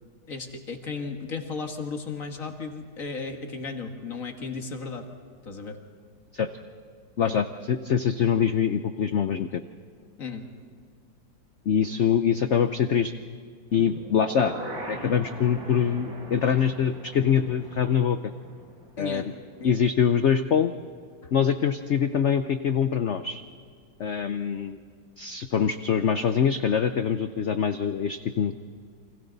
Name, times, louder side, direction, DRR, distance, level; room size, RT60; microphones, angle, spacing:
voice 1, 0.3-5.1 5.4-5.8 7.2-7.4 10.2-10.4 19.0-19.3 19.6-19.8 21.2-21.3, left 4 dB, 45° left, 4 dB, 1.9 m, -35 dB
voice 2, 7.2-9.6 11.7-13.1 13.7-14.5 14.9-18.2 19.0-19.2 19.6-20.7 21.3-23.4 24.0-24.8 25.2-28.5, left 7 dB, 85° left, 9 dB, 0.6 m, -24 dB
sound 1, 13.7-19.7 20.0-20.1, right 1 dB, 80° right, 6.6 m, -41 dB
29.0 x 25.0 x 4.0 m, 2.1 s
omnidirectional pair, 2.1 m